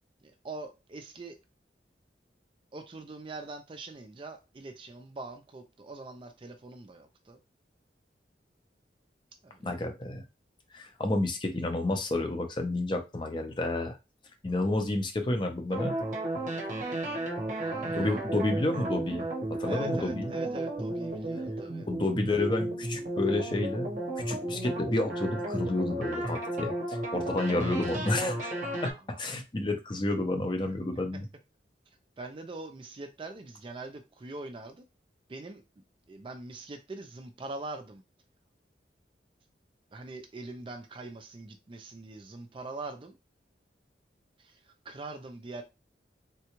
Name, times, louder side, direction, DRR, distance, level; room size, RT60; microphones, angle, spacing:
voice 1, 0.4-1.4 2.7-7.4 9.4-9.8 17.6-18.2 19.7-21.9 28.8-29.2 32.2-34.8 35.3-35.6 36.1-38.0 39.9-43.2 44.4-45.6, right 2 dB, 30° right, 0.4 m, -43 dB
voice 2, 9.6-10.2 10.7-14.0 14.4-16.0 17.9-19.3 19.6-20.3 21.9-23.9 24.3-28.5 28.8-31.3, left 2 dB, 25° left, 0.5 m, -30 dB
sound 1, 15.7-28.9, right 1 dB, 45° right, 0.8 m, -33 dB
3.6 x 2.2 x 2.9 m
head